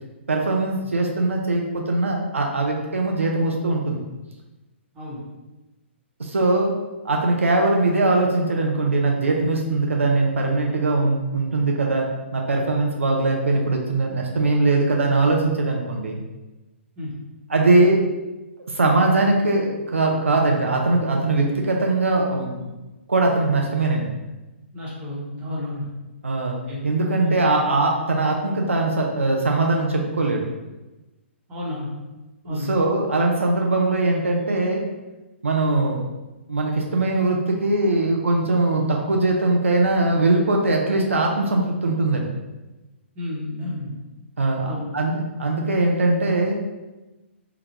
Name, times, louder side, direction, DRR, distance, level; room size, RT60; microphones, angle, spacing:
voice 1, 0.3-4.0 6.2-6.8 7.0-16.2 17.5-18.0 18.6-22.7 23.1-24.1 26.2-26.6 26.8-30.5 32.5-34.8 35.4-36.1 36.5-42.3 44.4-46.6, right 2 dB, 85° right, 1 dB, 0.5 m, -21 dB
voice 2, 24.7-25.9 26.7-26.8 27.2-27.4 31.5-31.9 32.4-32.7 43.1-43.9 44.6-44.8, left 1 dB, 20° right, -6 dB, 1.1 m, -31 dB
3.8 x 2.2 x 2.9 m, 1.1 s
figure-of-eight pair, 125°, 7 cm